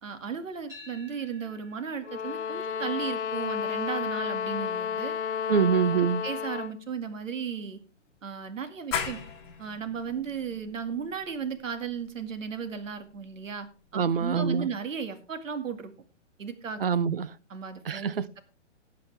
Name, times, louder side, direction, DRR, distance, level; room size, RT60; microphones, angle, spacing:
voice 1, 0.0-5.2 6.0-7.8 8.2-9.2 9.6-13.7 13.9-15.9 16.4-16.8 17.5-18.4, right 6 dB, 85° right, 2.2 m, -35 dB
sound 1, 0.7-8.9, left 2 dB, 10° right, 4.1 m, -56 dB
sound 2, 2.0-6.8, left 7 dB, 65° left, 1.2 m, -32 dB
voice 2, 5.5-6.2 13.9-14.7 16.8-17.3 17.9-18.3, right 6 dB, 50° right, 0.6 m, -25 dB
sound 3, 8.9-14.3, left 7 dB, 20° left, 2.0 m, -39 dB
19.0 x 7.6 x 3.4 m
hypercardioid pair, 175°, 37 cm